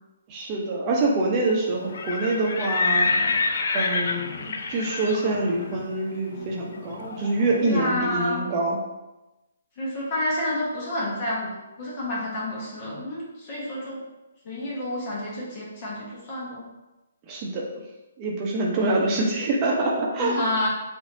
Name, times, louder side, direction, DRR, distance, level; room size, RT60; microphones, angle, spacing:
voice 1, 0.3-3.1 3.7-8.8 17.3-17.7 18.2-20.4, right 2 dB, 30° right, -2 dB, 0.7 m, -25 dB
Livestock farm animals working animals, 1.8-7.6, left 3 dB, 60° left, 0.4 m, -28 dB
voice 2, 7.6-8.4 9.8-11.5 11.8-14.0 14.4-16.6 20.2-20.7, left 1 dB, 35° left, -6 dB, 1.2 m, -29 dB
4.8 x 2.7 x 2.6 m, 1.0 s
figure-of-eight pair, 135°, 0 cm